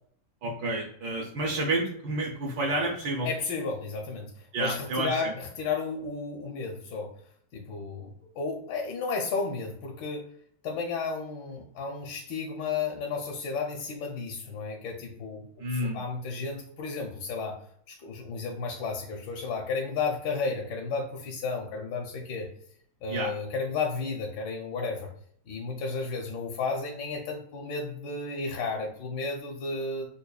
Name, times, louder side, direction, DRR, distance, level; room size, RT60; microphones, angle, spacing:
voice 1, 0.4-3.3 4.5-5.3 15.6-16.0 23.1-23.3, right 2 dB, 80° right, -2 dB, 1.4 m, -30 dB
voice 2, 3.2-7.1 7.5-10.3 10.6-17.6 17.9-22.5 23.0-25.1 25.5-30.1, left 4 dB, 85° left, 1 dB, 1.3 m, -33 dB
5.2 x 2.3 x 2.3 m, 0.64 s
omnidirectional pair, 1.9 m